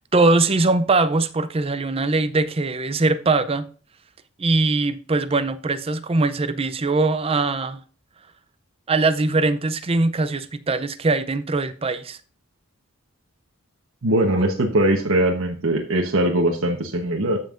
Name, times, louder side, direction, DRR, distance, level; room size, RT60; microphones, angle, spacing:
voice 1, 0.1-3.7 4.4-7.8 8.9-12.2 14.3-14.5, right 3 dB, 25° right, 0.5 m, -21 dB
voice 2, 14.0-17.4, right 1 dB, 65° right, 1.1 m, -21 dB
15.0 x 5.5 x 2.5 m
head